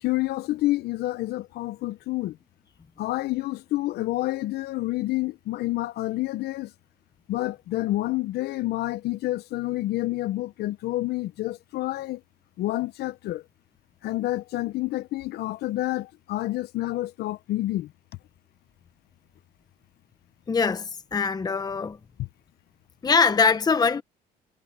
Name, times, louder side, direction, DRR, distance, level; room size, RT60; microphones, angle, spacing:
voice 1, 0.0-2.4 3.0-6.7 7.3-12.2 12.6-13.4 14.0-17.9 22.2-22.3, left 17 dB, 70° left, 0.7 m, -28 dB
voice 2, 20.5-22.0 23.0-24.0, left 5 dB, 25° left, 1.0 m, -22 dB
cardioid pair, 110°, 17 cm